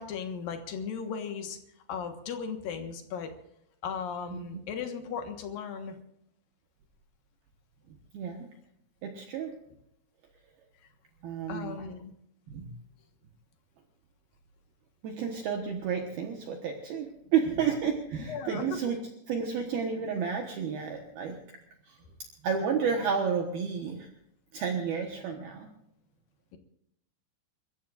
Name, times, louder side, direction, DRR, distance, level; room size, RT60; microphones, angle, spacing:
voice 1, 0.0-1.6 1.9-3.3 3.8-6.0 11.5-12.1 18.3-18.9, left 6 dB, 65° left, 5 dB, 2.6 m, -36 dB
voice 2, 7.9-8.5 9.0-9.6 11.2-11.8 12.5-12.7 15.0-19.0 19.3-21.4 21.9-22.0 22.4-24.1 24.5-25.7, right 6 dB, 65° right, 2 dB, 2.8 m, -31 dB
30.0 x 14.5 x 2.5 m, 0.77 s
omnidirectional pair, 5.4 m